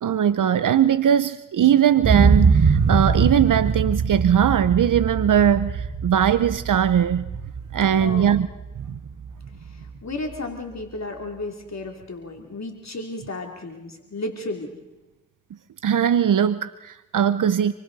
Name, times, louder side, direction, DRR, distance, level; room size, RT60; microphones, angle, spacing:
voice 1, 0.0-7.3 7.7-8.5 8.8-9.0 15.8-17.7, right 9 dB, 80° right, 0.7 m, -20 dB
sound 1, 2.0-9.9 10.3-10.4, right 5 dB, 60° right, 1.4 m, -23 dB
voice 2, 8.0-8.3 9.6-14.7, left 2 dB, 60° left, 3.0 m, -33 dB
27.5 x 23.0 x 4.1 m
cardioid pair, 40°, 31 cm